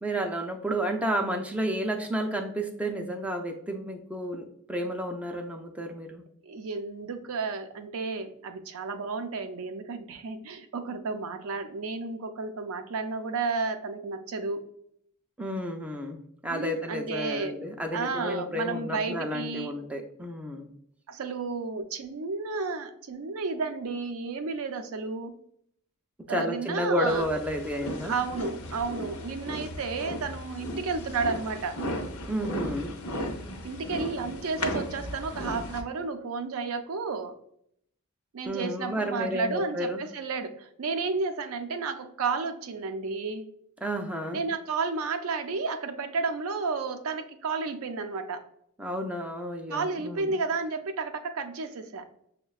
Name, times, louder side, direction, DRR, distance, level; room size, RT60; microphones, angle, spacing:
voice 1, 0.0-6.2 15.4-16.2 16.4-20.7 26.3-28.1 32.3-32.9 38.4-40.0 43.8-44.4 48.8-50.3, equal, 5° right, 3 dB, 0.4 m, -31 dB
voice 2, 6.4-14.6 16.5-17.5 17.9-19.7 21.1-25.3 26.3-27.3 28.1-31.8 33.6-37.3 38.3-43.5 44.3-48.4 49.7-52.1, right 4 dB, 65° right, 7 dB, 0.4 m, -32 dB
sound 1, 27.1-35.8, equal, 70° left, 0.6 m, -36 dB
6.2 x 2.1 x 2.3 m, 0.70 s
head